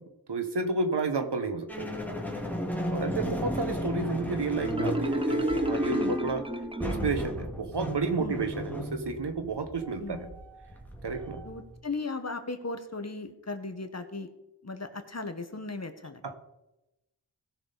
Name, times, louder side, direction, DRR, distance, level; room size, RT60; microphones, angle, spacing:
voice 1, 0.3-1.9 2.9-6.4 6.8-10.3 11.0-11.4 16.2-16.3, right 3 dB, 65° right, 7 dB, 1.3 m, -31 dB
sound 1, 1.7-11.8, equal, 5° left, 2.0 m, -35 dB
voice 2, 2.7-3.5 5.9-6.2 8.2-8.4 10.0-10.4 11.4-14.3 14.6-16.2, left 3 dB, 35° left, 8 dB, 1.2 m, -37 dB
Marimba xylophone, 4.6-7.4, right 2 dB, 10° right, 0.8 m, -30 dB
17.5 x 6.3 x 4.0 m, 0.94 s
wide cardioid pair, 55°, 45 cm